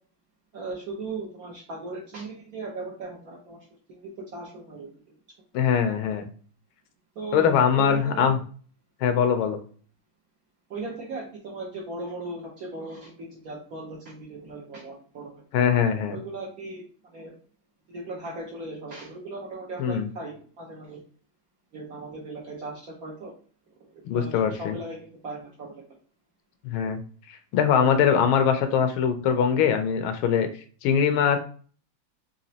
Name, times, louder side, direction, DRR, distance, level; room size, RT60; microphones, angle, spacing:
voice 1, 0.5-3.6 3.9-4.9 7.2-8.4 10.7-15.4 16.1-16.8 17.1-17.3 17.9-21.0 21.7-23.3 23.9-25.8, right 2 dB, 65° right, -1 dB, 0.9 m, -38 dB
voice 2, 5.5-6.3 7.3-8.4 9.0-9.6 15.5-16.2 19.8-20.1 24.1-24.7 26.6-27.0 27.3-30.5 30.8-31.4, left 7 dB, 80° left, 8 dB, 1.4 m, -22 dB
4.0 x 2.8 x 2.7 m, 0.43 s
omnidirectional pair, 2.2 m